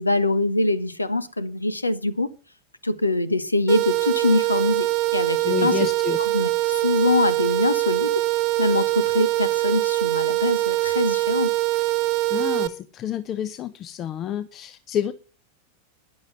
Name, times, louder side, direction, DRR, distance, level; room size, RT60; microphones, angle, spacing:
voice 1, 0.0-2.3 2.8-5.8 6.2-8.2 8.6-11.5, left 2 dB, 85° left, 1.1 m, -24 dB
sound 1, 3.7-12.7, right 18 dB, 40° right, 1.2 m, -23 dB
voice 2, 5.4-6.3 12.3-15.1, left 10 dB, 30° left, 0.7 m, -29 dB
14.0 x 10.5 x 5.7 m
figure-of-eight pair, 90°, 0 cm